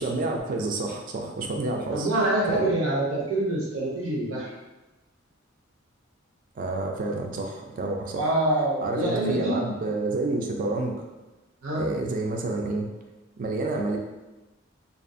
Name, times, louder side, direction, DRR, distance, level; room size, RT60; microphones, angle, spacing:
voice 1, 0.0-2.1 2.5-2.7 6.6-8.3 8.8-11.0 11.7-12.9 13.4-14.0, right 2 dB, 45° right, 2 dB, 0.4 m, -29 dB
voice 2, 1.9-4.5 8.1-9.6 11.6-11.8, right 1 dB, 80° right, -5 dB, 0.8 m, -25 dB
2.5 x 2.3 x 2.6 m, 1.1 s
head